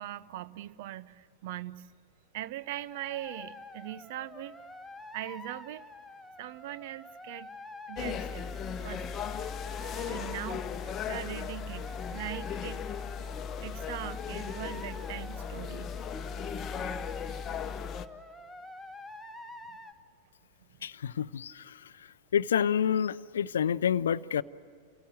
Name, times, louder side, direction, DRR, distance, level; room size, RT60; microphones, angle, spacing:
voice 1, 0.0-1.9 2.3-4.5 5.1-5.9 6.4-7.5 7.9-8.4 8.8-9.0 10.1-12.8 13.6-15.9, right 14 dB, 50° right, 0.7 m, -40 dB
sound 1, 2.6-19.9, left 2 dB, 5° left, 1.2 m, -47 dB
sound 2, 8.0-18.1, left 7 dB, 25° left, 1.0 m, -37 dB
voice 2, 20.8-21.8 22.3-24.4, left 8 dB, 65° left, 0.6 m, -28 dB
29.0 x 17.0 x 9.4 m
figure-of-eight pair, 95°, 0 cm